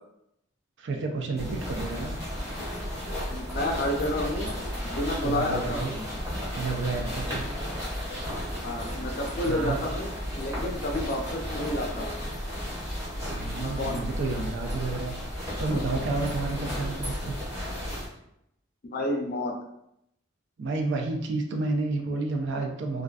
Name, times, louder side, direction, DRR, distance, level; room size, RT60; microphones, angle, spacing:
voice 1, 0.8-2.2 5.2-5.9 6.5-7.5 9.4-9.8 13.3-15.2 15.6-17.4 20.6-23.0, right 3 dB, 60° right, 3 dB, 0.4 m, -30 dB
sound 1, 1.4-18.1, equal, 15° right, 0.9 m, -33 dB
voice 2, 3.3-4.5 4.8-6.0 8.6-12.1 13.6-14.2 18.8-19.5, left 1 dB, 45° left, 1 dB, 0.4 m, -30 dB
2.4 x 2.3 x 2.3 m, 0.77 s
head